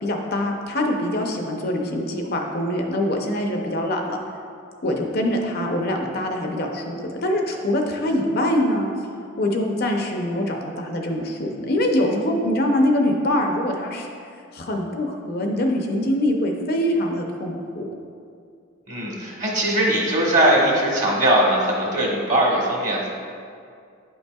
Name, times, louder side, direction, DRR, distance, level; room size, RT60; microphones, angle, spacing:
voice 1, 0.0-4.2 4.8-8.9 9.4-14.1 14.5-17.9, left 1 dB, 50° left, 2 dB, 0.6 m, -24 dB
voice 2, 18.9-23.1, right 1 dB, 35° right, -3 dB, 1.2 m, -20 dB
9.4 x 5.3 x 2.3 m, 2.3 s
head